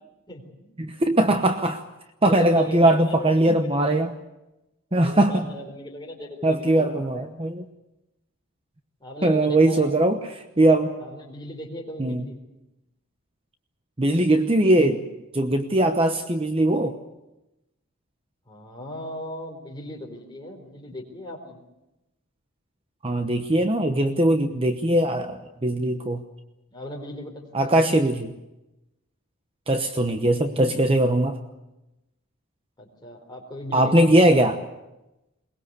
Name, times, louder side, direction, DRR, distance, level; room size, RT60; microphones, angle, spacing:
voice 1, 0.3-0.7 2.3-3.9 5.0-7.3 9.0-9.9 11.0-12.4 18.5-21.6 26.7-27.8 32.8-34.5, left 1 dB, 20° left, 1 dB, 4.0 m, -37 dB
voice 2, 0.8-1.8 2.2-4.1 4.9-5.4 6.4-7.6 9.2-10.9 12.0-12.3 14.0-15.0 15.3-17.0 23.0-26.2 27.5-28.3 29.7-31.4 33.7-34.5, right 1 dB, 25° right, 7 dB, 1.0 m, -20 dB
22.0 x 20.5 x 8.2 m, 0.96 s
head